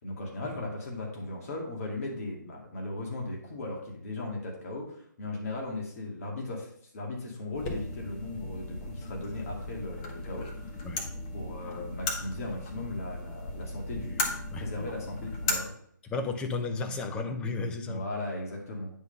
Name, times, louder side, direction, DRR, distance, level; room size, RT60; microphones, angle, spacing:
voice 1, 0.0-10.7 11.3-15.7 17.8-18.9, left 2 dB, 45° left, -1 dB, 2.2 m, -37 dB
sound 1, 7.5-15.6, left 2 dB, 25° left, 1.1 m, -36 dB
voice 2, 16.0-18.0, left 3 dB, 10° left, 7 dB, 0.5 m, -33 dB
9.5 x 3.8 x 5.4 m, 0.66 s
figure-of-eight pair, 150°, 11 cm